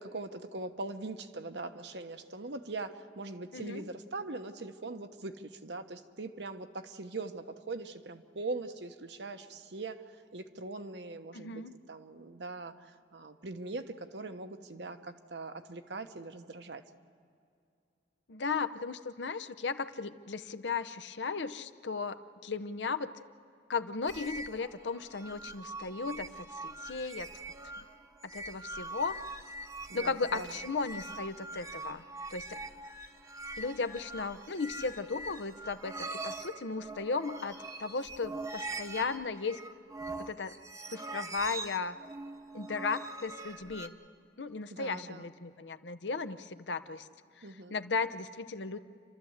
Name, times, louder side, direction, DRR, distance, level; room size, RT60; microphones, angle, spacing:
voice 1, 0.0-10.0 10.3-11.6 11.9-16.8 29.9-30.5 44.7-45.3 47.4-47.8, right 3 dB, 70° right, 8 dB, 1.1 m, -41 dB
voice 2, 3.5-3.9 11.3-11.7 18.3-23.1 23.7-27.3 28.3-29.2 29.9-32.0 32.3-32.6 33.6-39.6 40.2-40.6 40.9-42.0 42.5-44.0 44.4-47.1 47.7-48.8, left 4 dB, 80° left, 11 dB, 0.8 m, -36 dB
sound 1, 24.1-43.9, right 2 dB, 20° right, 0.9 m, -43 dB
29.5 x 13.0 x 8.0 m, 2.5 s
head